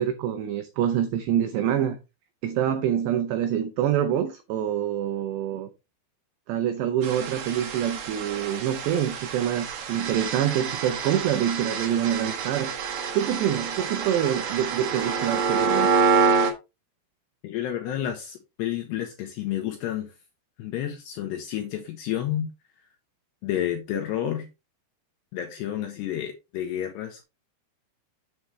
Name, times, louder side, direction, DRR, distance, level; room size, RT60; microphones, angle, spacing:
voice 1, 0.0-2.0 2.4-5.7 6.5-12.7 13.1-15.9, right 10 dB, 90° right, 2.4 m, -26 dB
sound 1, 7.0-16.5, right 5 dB, 60° right, 2.7 m, -27 dB
voice 2, 17.4-20.1 20.6-22.5 23.4-24.5 25.3-27.2, left 11 dB, 75° left, 2.6 m, -30 dB
7.8 x 7.1 x 3.3 m
omnidirectional pair, 6.0 m